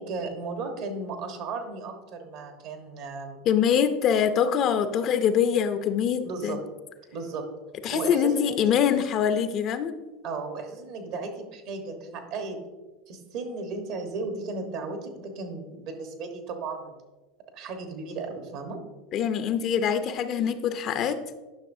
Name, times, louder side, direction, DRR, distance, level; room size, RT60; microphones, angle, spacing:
voice 1, 0.0-3.4 6.2-6.6 7.1-7.5 7.9-9.0 10.2-12.6 13.1-16.9 17.5-18.8, right 3 dB, 60° right, 4 dB, 1.3 m, -35 dB
voice 2, 3.5-6.6 7.8-9.9 19.1-21.2, left 8 dB, 45° left, 10 dB, 0.6 m, -24 dB
10.5 x 6.0 x 2.7 m, 1.2 s
hypercardioid pair, 90°, 0 cm